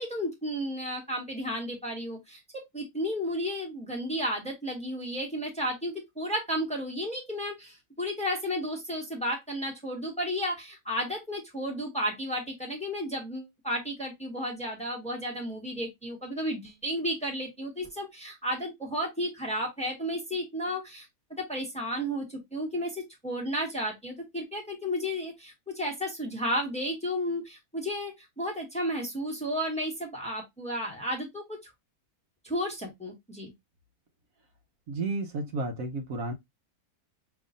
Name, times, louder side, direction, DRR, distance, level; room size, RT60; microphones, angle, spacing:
voice 1, 0.0-21.1 21.4-31.7 32.4-33.5, equal, 5° left, 1.2 m, -33 dB
voice 2, 34.9-36.3, right 2 dB, 70° right, 1.2 m, -32 dB
5.4 x 3.1 x 2.5 m
omnidirectional pair, 1.6 m